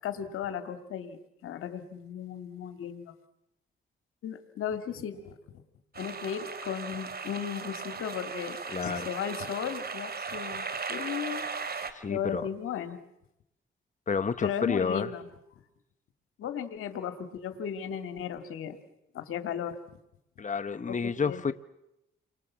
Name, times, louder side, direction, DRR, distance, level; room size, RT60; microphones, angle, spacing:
voice 1, 0.0-3.1 4.2-5.6 6.0-11.4 12.1-13.0 14.4-15.3 16.4-18.8 19.1-19.8 20.9-21.4, left 8 dB, 90° left, 2.1 m, -36 dB
sound 1, 5.9-11.9, right 5 dB, 50° right, 2.6 m, -37 dB
voice 2, 8.7-9.1 11.9-12.5 14.1-15.1 20.4-21.5, left 5 dB, 35° left, 1.1 m, -30 dB
29.5 x 24.0 x 7.3 m
cardioid pair, 60°, 21 cm